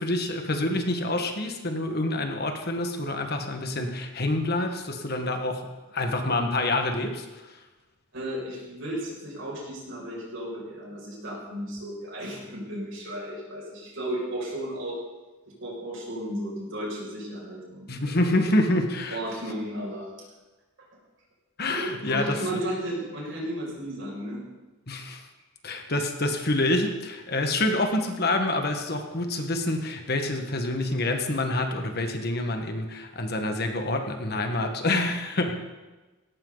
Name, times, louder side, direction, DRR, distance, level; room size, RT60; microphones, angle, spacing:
voice 1, 0.0-5.6 5.9-7.3 17.9-19.2 21.6-22.4 24.9-25.2 25.6-35.5, left 2 dB, 50° left, 4 dB, 1.7 m, -27 dB
voice 2, 8.1-15.0 15.6-18.3 19.1-20.1 21.7-24.4, right 1 dB, 65° right, -3 dB, 6.5 m, -34 dB
17.5 x 17.5 x 4.1 m, 1.2 s
head